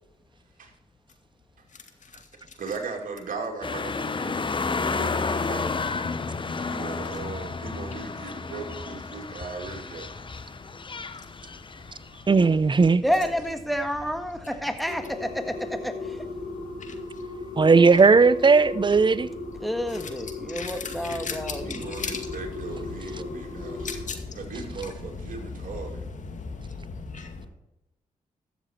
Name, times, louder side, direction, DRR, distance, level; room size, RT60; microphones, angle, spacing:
voice 1, 2.6-4.3 4.9-5.8 6.7-10.1 11.8-12.2 13.2-13.3 21.6-24.0 24.3-26.1, right 4 dB, 70° right, 2.6 m, -38 dB
sound 1, 3.6-12.5 12.8-12.9, left 4 dB, 35° left, 0.9 m, -31 dB
voice 2, 12.3-13.0 17.6-19.3, right 4 dB, 35° right, 0.7 m, -17 dB
voice 3, 13.0-16.3 19.6-21.9, equal, ahead, 1.7 m, -29 dB
sound 2, 14.9-24.0, left 2 dB, 75° left, 3.3 m, -37 dB
voice 4, 20.5-27.5, left 4 dB, 60° left, 2.2 m, -37 dB
13.5 x 7.1 x 4.4 m
supercardioid pair, 50°, 15 cm